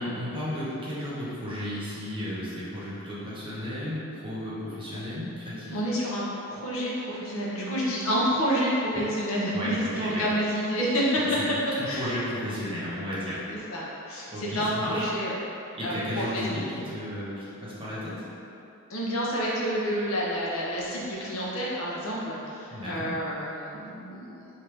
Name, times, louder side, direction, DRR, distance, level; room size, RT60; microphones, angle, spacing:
voice 1, 0.0-5.8 9.5-10.2 11.2-11.3 11.8-13.4 14.3-15.1 15.7-18.2 22.7-23.1, left 1 dB, 25° right, -9 dB, 1.2 m, -34 dB
voice 2, 5.7-11.4 11.9-12.1 13.5-15.4 15.8-16.8 18.9-24.5, equal, 70° left, -5 dB, 0.9 m, -29 dB
5.4 x 2.8 x 3.3 m, 2.8 s
head